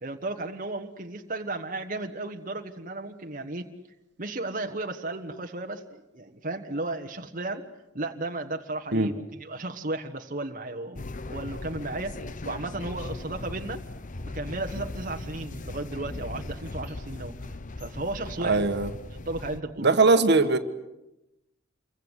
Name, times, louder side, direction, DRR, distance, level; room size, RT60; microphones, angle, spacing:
voice 1, 0.0-3.7 4.2-7.7 7.9-13.8 14.3-17.3 17.8-18.9 19.2-19.9, right 2 dB, 45° right, 4 dB, 1.4 m, -34 dB
sound 1, 11.0-19.6, left 2 dB, 40° left, 0.9 m, -38 dB
voice 2, 18.4-18.9 19.8-20.6, right 3 dB, 60° right, 9 dB, 1.5 m, -20 dB
28.5 x 23.5 x 8.2 m, 0.93 s
head